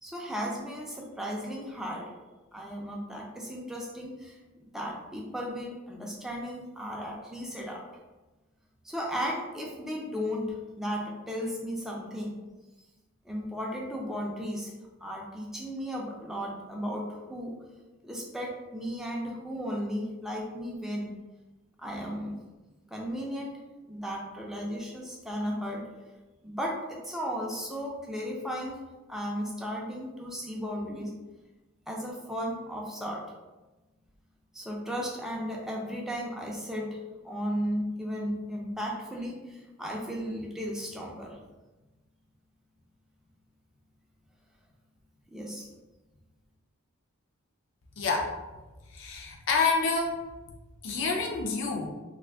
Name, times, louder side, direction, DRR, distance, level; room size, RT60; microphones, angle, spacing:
voice 1, 0.0-2.1 2.5-4.4 4.7-7.8 8.8-12.3 13.2-14.7 15.0-17.6 18.0-21.1 21.8-22.4 22.9-23.5 23.8-25.8 26.4-28.8 29.1-31.1 31.9-33.2 34.5-37.0 37.2-41.4 45.3-45.7, equal, ahead, -2 dB, 0.4 m, -35 dB
voice 2, 48.0-48.3 48.9-50.2 50.8-51.9, left 4 dB, 60° left, 1 dB, 0.5 m, -28 dB
2.5 x 2.4 x 3.4 m, 1.2 s
head